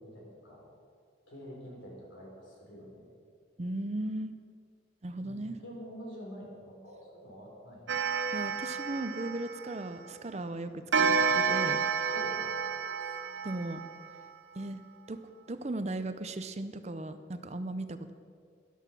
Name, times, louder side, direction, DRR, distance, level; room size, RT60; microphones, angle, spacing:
voice 1, 0.0-0.6 1.3-3.1 5.2-8.0 10.9-11.2 12.1-12.6, equal, 85° left, -2 dB, 4.2 m, -47 dB
voice 2, 3.6-4.3 5.0-5.6 8.3-11.1 11.3-11.8 13.4-13.8 14.6-14.8 15.1-15.2 15.5-18.1, right 2 dB, 35° right, 11 dB, 0.6 m, -36 dB
Clock, 7.9-10.1 10.9-14.3, right 6 dB, 80° right, 1.0 m, -30 dB
12.5 x 11.0 x 6.1 m, 2.2 s
head